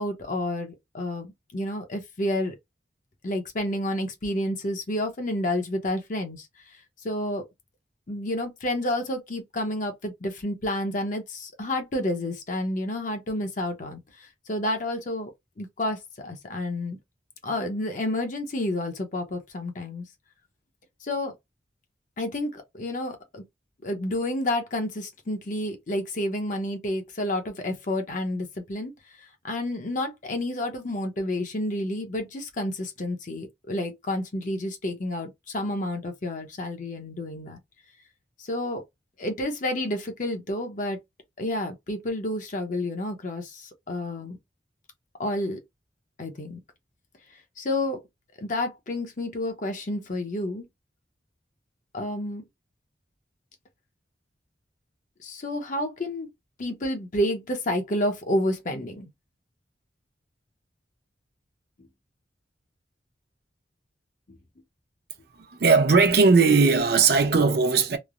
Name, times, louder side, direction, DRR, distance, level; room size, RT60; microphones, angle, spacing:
voice 1, 0.0-2.6 3.2-6.5 7.0-7.4 8.1-15.3 15.6-17.0 17.4-20.0 21.0-21.3 22.2-23.4 23.8-28.9 29.4-37.6 38.4-38.8 39.2-41.0 41.4-44.4 45.2-45.6 46.2-46.6 47.6-48.0 48.4-50.6 51.9-52.5 55.2-56.3 56.6-59.1 64.3-64.4, left 1 dB, 45° left, 0.7 m, -30 dB
voice 2, 65.5-68.0, right 4 dB, 55° right, 0.7 m, -18 dB
3.2 x 2.0 x 2.4 m
head